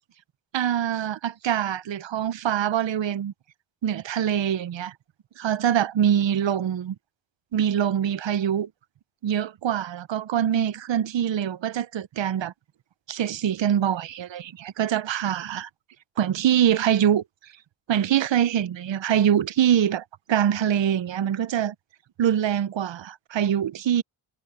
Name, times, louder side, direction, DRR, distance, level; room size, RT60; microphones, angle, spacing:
voice 1, 0.5-3.3 3.8-4.9 5.4-6.9 7.5-8.7 9.2-12.5 13.1-15.7 16.2-17.2 17.9-21.7 22.2-24.0, right 10 dB, 65° right, 0.8 m, -24 dB
cardioid pair, 70°, 49 cm